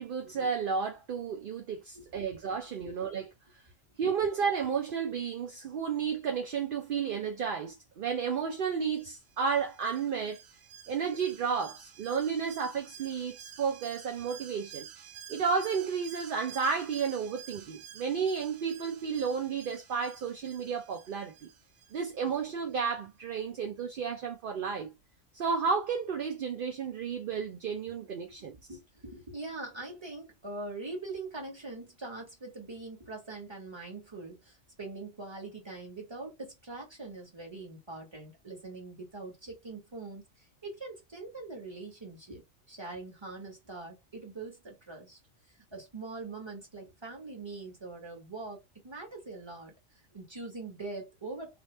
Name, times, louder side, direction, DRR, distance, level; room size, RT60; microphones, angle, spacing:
voice 1, 0.0-3.3 4.0-10.4 10.9-14.9 15.3-21.5 21.9-24.9 25.3-28.6, right 6 dB, 55° right, 0.6 m, -32 dB
voice 2, 1.9-2.3 2.8-3.0 28.3-45.2 45.7-49.7 50.1-51.6, right 3 dB, 20° right, 1.4 m, -43 dB
Alarm, 8.9-22.4 22.7-22.8, right 9 dB, 80° right, 1.0 m, -51 dB
2.8 x 2.5 x 3.2 m
omnidirectional pair, 1.3 m